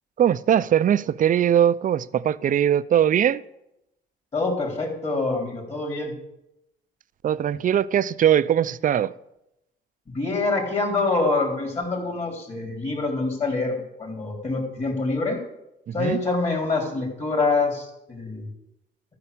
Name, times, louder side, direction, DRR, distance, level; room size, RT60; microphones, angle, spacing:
voice 1, 0.2-3.4 7.2-9.2 15.9-16.2, right 10 dB, 40° right, 0.4 m, -21 dB
voice 2, 4.3-6.1 10.1-15.4 15.9-18.5, left 3 dB, 35° left, 3.7 m, -25 dB
13.5 x 6.0 x 6.8 m
cardioid pair, 90°, 20 cm